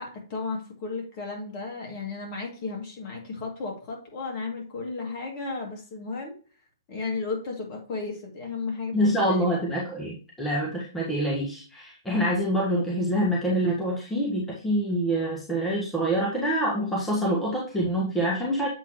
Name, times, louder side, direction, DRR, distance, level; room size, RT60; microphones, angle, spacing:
voice 1, 0.0-6.3 6.9-9.6, left 4 dB, 35° left, 0 dB, 2.6 m, -34 dB
voice 2, 8.9-18.7, equal, 5° left, -5 dB, 1.6 m, -26 dB
7.9 x 4.0 x 3.1 m, 0.37 s
hypercardioid pair, 130°, 2 cm